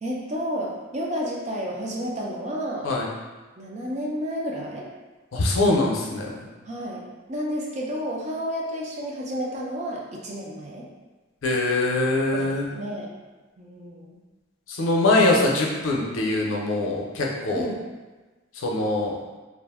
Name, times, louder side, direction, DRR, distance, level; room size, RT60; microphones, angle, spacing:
voice 1, 0.0-2.9 3.6-4.9 6.6-10.9 12.3-13.1 13.6-14.1 17.5-17.8, equal, 35° right, -2 dB, 0.4 m, -31 dB
voice 2, 5.3-6.3 11.4-12.6 14.7-17.7 18.6-19.2, left 2 dB, 85° left, -1 dB, 0.5 m, -23 dB
2.4 x 2.0 x 3.4 m, 1.2 s
head